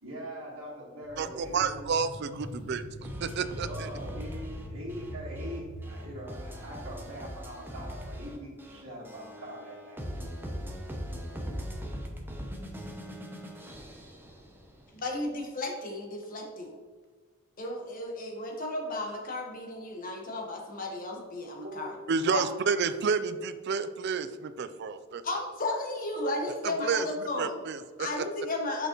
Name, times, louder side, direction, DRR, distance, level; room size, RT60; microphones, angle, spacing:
voice 1, 0.0-1.8 3.6-10.0 21.6-21.9, equal, 85° right, -8 dB, 1.6 m, -42 dB
sound 1, 1.0-7.2, equal, 90° left, 1.2 m, -43 dB
voice 2, 1.2-2.8 3.2-3.9 22.1-25.2 26.6-27.1 27.4-28.2, right 5 dB, 55° right, 11 dB, 0.4 m, -30 dB
sound 2, 3.0-15.0, equal, 10° right, 0.7 m, -41 dB
voice 3, 14.9-16.8 17.6-21.9 22.3-22.4 25.2-27.5 28.0-28.9, left 2 dB, 40° left, 0 dB, 1.2 m, -34 dB
6.2 x 5.4 x 3.0 m, 1.5 s
head